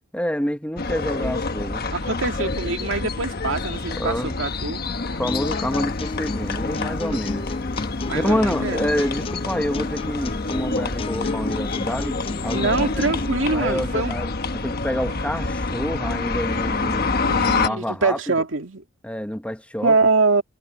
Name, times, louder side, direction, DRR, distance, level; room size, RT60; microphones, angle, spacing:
voice 1, 0.1-1.9 4.0-4.3 5.2-7.5 8.1-12.2 12.4-13.0 13.5-18.2 19.0-20.0, equal, 5° left, 1.2 m, -27 dB
sound 1, 0.8-17.7, left 3 dB, 55° left, 1.3 m, -27 dB
voice 2, 1.9-4.8 8.0-9.0 12.5-14.1 15.1-15.3 17.2-18.8 19.8-20.4, right 3 dB, 85° right, 2.4 m, -24 dB
sound 2, 5.3-13.3, left 3 dB, 30° left, 0.3 m, -32 dB
Harmonica, 10.0-17.4, right 4 dB, 35° right, 4.9 m, -58 dB
head